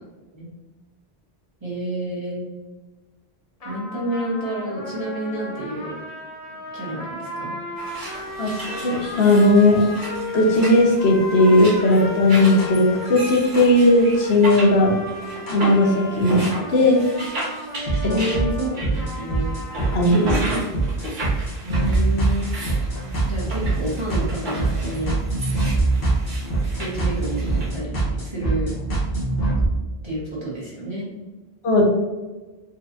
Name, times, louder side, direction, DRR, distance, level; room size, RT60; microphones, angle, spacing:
voice 1, 1.6-2.4 3.6-6.0 6.5-7.5 18.0-19.5 21.6-22.5 23.2-25.1 26.7-28.7 30.0-31.1, right 1 dB, 30° right, -6 dB, 1.0 m, -29 dB
sound 1, 3.6-20.8, left 1 dB, 40° left, 0.7 m, -35 dB
sound 2, 7.8-27.7, right 1 dB, 50° right, 0.9 m, -35 dB
voice 2, 8.8-9.9 10.3-14.9 15.5-17.0 19.9-20.6 31.6-31.8, left 1 dB, 80° left, 0 dB, 0.9 m, -17 dB
sound 3, 12.6-12.7 13.5-13.6 14.5-14.6 15.5-15.6 16.4-16.5 17.4-17.5 17.9-29.7, right 2 dB, 60° left, 1.3 m, -24 dB
3.9 x 2.3 x 2.5 m, 1.2 s
omnidirectional pair, 1.1 m